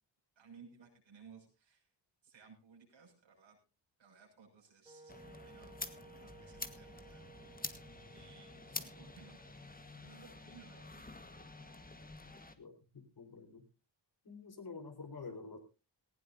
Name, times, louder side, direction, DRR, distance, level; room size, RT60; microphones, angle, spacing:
voice 1, 0.3-1.9 2.2-3.6 4.0-11.1, right 5 dB, 90° right, 1 dB, 6.6 m, -60 dB
Wind instrument woodwind instrument, 4.9-10.7, right 4 dB, 10° right, 2.9 m, -59 dB
sound 1, 5.1-12.5, left 3 dB, 20° left, 1.5 m, -48 dB
voice 2, 12.6-13.7 14.2-15.6, left 4 dB, 55° left, 5 dB, 4.3 m, -48 dB
18.5 x 16.0 x 2.7 m, 0.31 s
wide cardioid pair, 105°, 45 cm